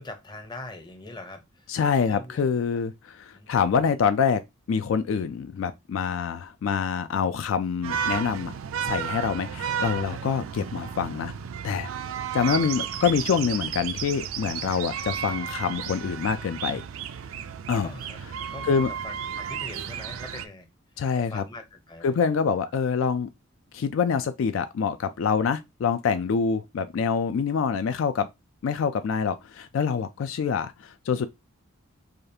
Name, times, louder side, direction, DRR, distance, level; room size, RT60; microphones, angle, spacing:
voice 1, 0.0-1.8 2.0-2.5 3.3-3.5 3.8-4.0 17.8-18.2 18.5-20.7 21.2-22.3, left 2 dB, 20° left, 0.7 m, -42 dB
voice 2, 1.7-4.4 4.7-8.5 8.8-11.3 11.6-11.9 12.3-16.9 17.7-17.9 18.7-18.9 21.0-21.4 22.0-23.3 23.7-28.3 28.6-31.3, left 6 dB, 65° left, 0.3 m, -26 dB
sound 1, 7.8-20.5, right 8 dB, 75° right, 0.4 m, -33 dB
4.9 x 2.4 x 2.7 m
head